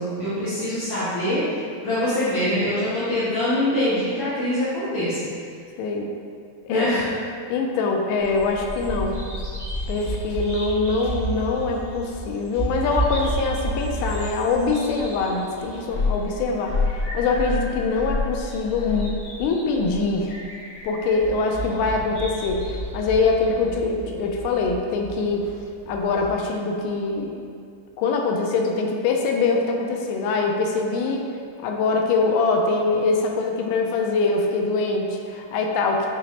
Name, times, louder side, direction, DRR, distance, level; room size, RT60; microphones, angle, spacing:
voice 1, 0.0-5.2 6.7-7.0, left 1 dB, 65° left, -13 dB, 1.6 m, -24 dB
voice 2, 5.8-6.1 6.6-6.9 7.5-9.2 9.9-20.3 20.8-25.5 25.9-27.4 28.0-31.2 31.6-36.1, left 3 dB, 85° left, 1 dB, 2.1 m, -23 dB
Bird vocalization bird call bird song, 8.2-26.3, left 1 dB, 45° left, 1.2 m, -30 dB
6.3 x 3.0 x 2.8 m, 2.3 s
omnidirectional pair, 3.6 m